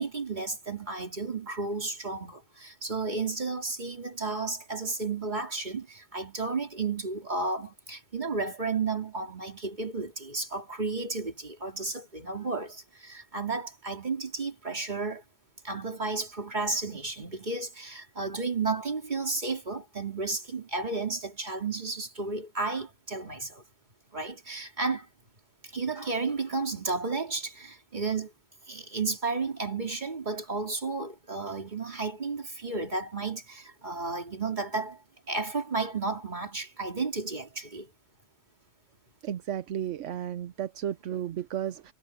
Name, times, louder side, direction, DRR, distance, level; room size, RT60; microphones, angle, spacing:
voice 1, 0.0-15.2 15.6-23.6 24.1-25.1 25.6-28.3 28.7-37.9, right 3 dB, 40° right, 2.9 m, -33 dB
voice 2, 39.2-41.9, right 10 dB, 80° right, 1.1 m, -33 dB
omnidirectional pair, 1.3 m